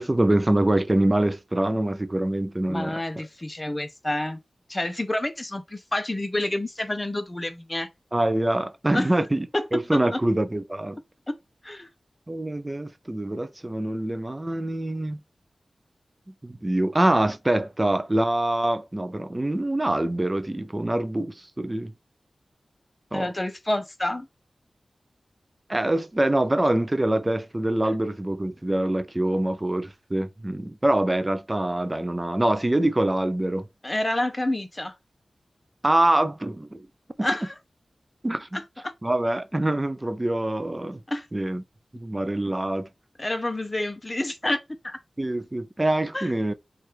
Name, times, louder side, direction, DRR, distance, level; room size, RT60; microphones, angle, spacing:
voice 1, 0.0-3.0 8.1-9.5 9.7-11.0 12.3-15.2 16.4-21.9 23.1-23.3 25.7-33.7 35.8-36.9 37.2-37.3 38.2-38.6 39.0-41.0 41.3-41.6 41.9-42.9 45.2-46.5, right 1 dB, 20° right, 0.4 m, -25 dB
voice 2, 2.7-4.4 4.7-7.9 8.9-9.1 9.5-9.6 9.9-10.2 11.3-11.9 23.1-24.3 26.6-26.7 33.8-35.0 37.2-37.5 38.5-38.6 41.1-41.3 43.2-45.0 46.1-46.3, left 1 dB, 25° left, 0.6 m, -28 dB
3.1 x 2.4 x 4.3 m
wide cardioid pair, 85°, 0 cm